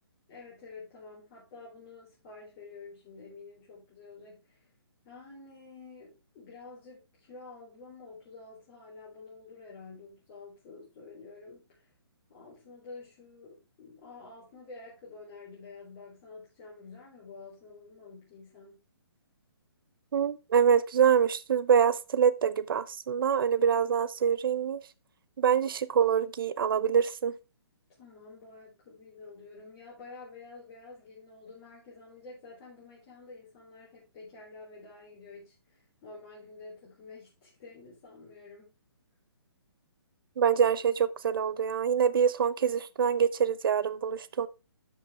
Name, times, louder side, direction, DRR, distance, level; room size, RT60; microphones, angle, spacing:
voice 1, 0.3-4.7 5.0-11.9 12.3-18.8 28.0-38.7, left 3 dB, 35° left, 4.1 m, -49 dB
voice 2, 20.1-24.8 25.4-27.3 40.4-44.5, right 7 dB, 55° right, 0.7 m, -25 dB
12.5 x 5.2 x 3.4 m
hypercardioid pair, 145°, 14 cm